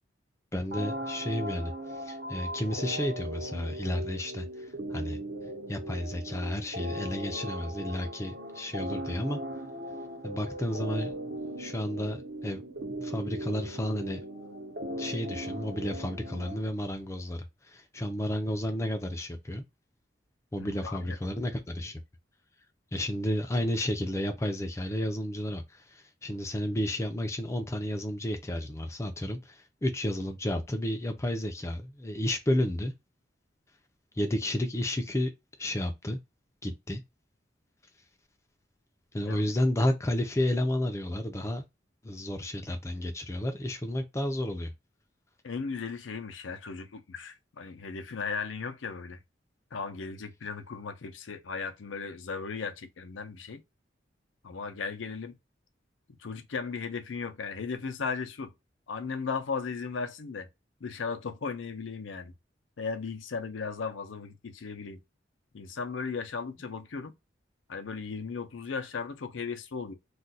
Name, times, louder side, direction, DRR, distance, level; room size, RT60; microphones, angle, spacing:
voice 1, 0.5-1.7 2.0-4.5 4.9-5.2 5.7-9.4 10.2-11.1 11.6-12.6 13.0-14.2 15.0-19.6 20.5-22.0 22.9-32.9 34.2-35.3 35.6-36.2 36.6-37.0 39.1-41.6 42.0-44.7, left 1 dB, 15° left, 0.4 m, -31 dB
sound 1, 0.7-16.7, right 1 dB, 60° right, 0.9 m, -38 dB
voice 2, 20.6-21.2 39.2-39.4 45.4-49.2 49.7-53.6 54.4-55.4 56.1-58.5 58.9-60.5 60.8-62.3 62.8-65.0 65.5-67.1 67.7-69.9, left 5 dB, 90° left, 0.5 m, -36 dB
2.4 x 2.2 x 3.9 m
head